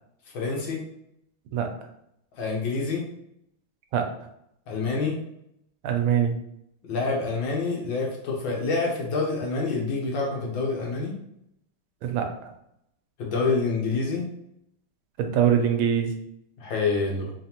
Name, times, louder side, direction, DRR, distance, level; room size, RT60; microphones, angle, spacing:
voice 1, 0.3-0.8 2.4-3.1 4.7-5.2 6.8-11.1 13.2-14.3 16.6-17.3, left 4 dB, 70° left, -1 dB, 1.6 m, -27 dB
voice 2, 5.8-6.3 12.0-12.3 15.2-16.2, right 8 dB, 85° right, 4 dB, 1.4 m, -23 dB
4.1 x 3.4 x 2.8 m, 0.77 s
omnidirectional pair, 2.2 m